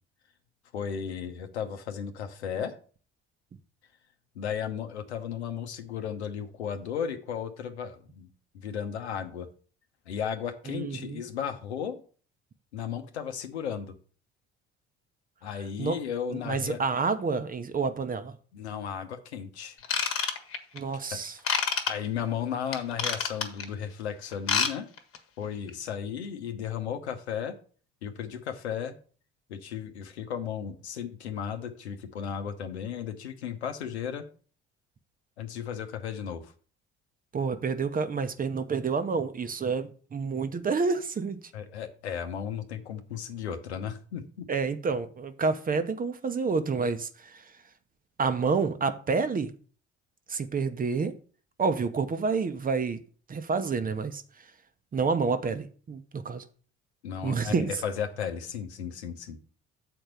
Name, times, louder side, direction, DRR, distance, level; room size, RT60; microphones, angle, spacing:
voice 1, 0.7-2.8 4.3-8.3 8.5-9.5 10.1-12.0 12.7-14.0 15.4-16.8 18.5-19.8 21.1-21.2 21.9-24.9 25.4-27.6 28.0-28.9 29.5-34.3 35.4-36.5 41.5-44.5 57.0-59.4, left 8 dB, 75° left, 0.9 m, -35 dB
voice 2, 10.7-11.2 15.8-16.0 16.3-18.3 20.7-21.4 37.3-41.4 44.5-47.4 48.2-49.5 50.3-51.2 51.6-53.0 53.3-54.2 54.9-56.4 57.2-57.7, right 4 dB, 25° right, 0.8 m, -28 dB
Ratchet pawl / Tools, 19.8-20.8 21.4-21.9 22.7-23.6 24.3-24.7 25.0-25.2 25.7-25.8, left 6 dB, 40° left, 1.3 m, -27 dB
7.6 x 4.4 x 6.5 m
figure-of-eight pair, 50°, 33 cm